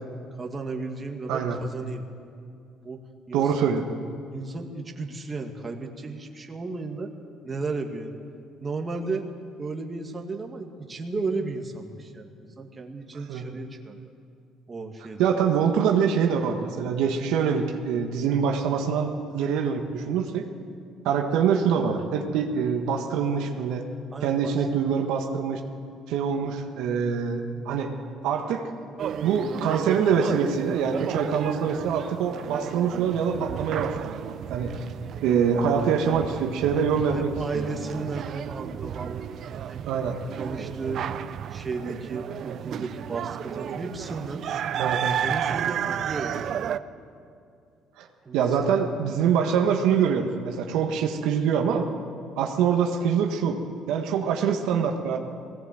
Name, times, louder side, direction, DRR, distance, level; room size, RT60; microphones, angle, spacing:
voice 1, 0.4-2.0 2.8-3.0 3.3-3.5 4.3-7.1 7.4-8.1 8.6-9.3 9.6-14.1 14.7-15.3 24.1-24.6 36.7-39.8 40.4-41.1 41.5-44.4 45.2-46.6 48.2-48.6, right 3 dB, 25° right, 2 dB, 2.1 m, -34 dB
voice 2, 1.3-1.6 3.3-3.8 13.3-13.4 15.2-20.4 21.0-23.8 24.2-25.6 26.1-27.9 28.2-28.6 29.2-34.7 35.2-37.8 39.9-40.1 44.8-45.1 48.0-48.1 48.3-51.9 52.4-53.6 53.9-55.2, right 7 dB, 80° right, 3 dB, 1.5 m, -24 dB
sound 1, 29.0-46.8, right 9 dB, 60° right, 0.6 m, -32 dB
19.5 x 17.0 x 7.8 m, 2.4 s
cardioid pair, 95°, 0 cm